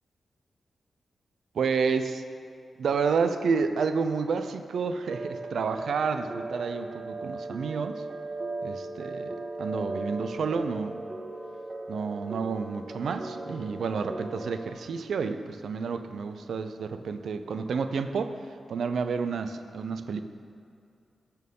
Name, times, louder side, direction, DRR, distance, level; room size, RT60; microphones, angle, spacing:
voice 1, 1.5-2.2 2.8-8.0 8.6-11.0 11.9-18.4 18.7-20.2, right 5 dB, 80° right, 9 dB, 0.5 m, -30 dB
sound 1, 5.1-14.7, right 2 dB, 35° right, 0.7 m, -37 dB
13.0 x 4.6 x 5.3 m, 2.5 s
wide cardioid pair, 105°, 0 cm